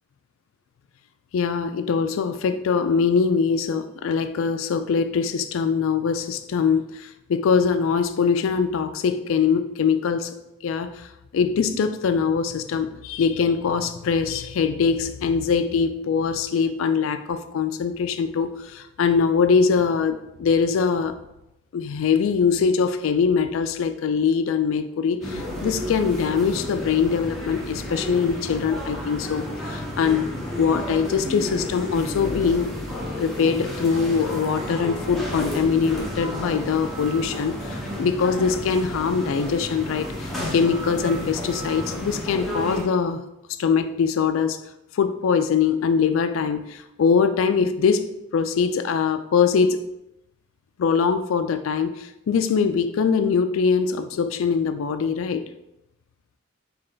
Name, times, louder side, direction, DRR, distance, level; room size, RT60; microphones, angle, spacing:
voice 1, 1.3-10.3 10.6-11.1 11.3-21.2 21.7-30.3 30.6-32.7 33.2-43.2 43.6-44.6 44.9-48.1 48.3-49.8 50.8-55.5, left 6 dB, 65° left, 10 dB, 0.3 m, -22 dB
sound 1, 25.2-42.8, left 1 dB, ahead, 0.6 m, -32 dB
3.3 x 3.1 x 3.8 m, 0.89 s
head